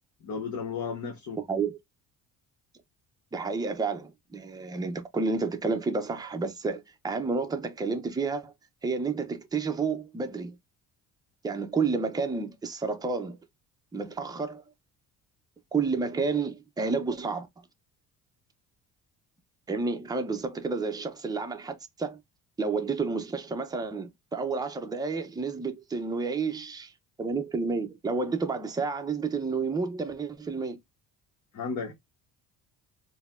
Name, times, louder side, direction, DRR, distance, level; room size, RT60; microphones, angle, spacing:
voice 1, 0.2-1.4 31.5-31.9, left 5 dB, 55° left, 0.9 m, -33 dB
voice 2, 1.4-1.8 3.3-8.5 8.8-10.6 11.4-13.4 13.9-14.6 15.7-17.5 19.7-22.2 22.6-26.9 27.2-30.8, right 4 dB, 10° right, 0.5 m, -30 dB
3.9 x 2.1 x 2.3 m
cardioid pair, 90°, 36 cm